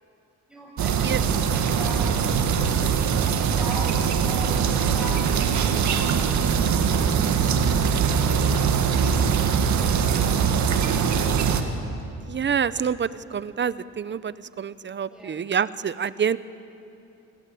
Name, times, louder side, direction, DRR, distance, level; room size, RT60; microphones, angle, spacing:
voice 1, 0.5-2.2 2.6-6.8 15.1-15.5, right 1 dB, ahead, -3 dB, 7.9 m, -41 dB
sound 1, 0.8-11.6, right 7 dB, 70° right, 2.1 m, -22 dB
voice 2, 12.3-16.4, right 7 dB, 40° right, 16 dB, 0.9 m, -27 dB
28.0 x 21.0 x 8.5 m, 2.8 s
cardioid pair, 90°, 30 cm